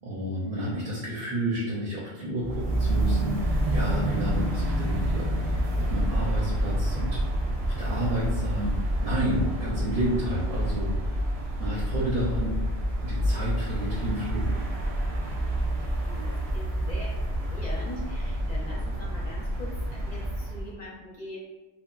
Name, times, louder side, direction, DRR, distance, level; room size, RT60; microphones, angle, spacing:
voice 1, 0.0-11.2 11.6-12.5 13.0-14.6, equal, 60° right, -5 dB, 0.7 m, -31 dB
sound 1, 2.4-20.7, right 1 dB, 90° right, 0.9 m, -28 dB
voice 2, 15.9-21.4, left 1 dB, 50° left, -5 dB, 0.5 m, -42 dB
2.9 x 2.1 x 2.3 m, 1.2 s
omnidirectional pair, 1.1 m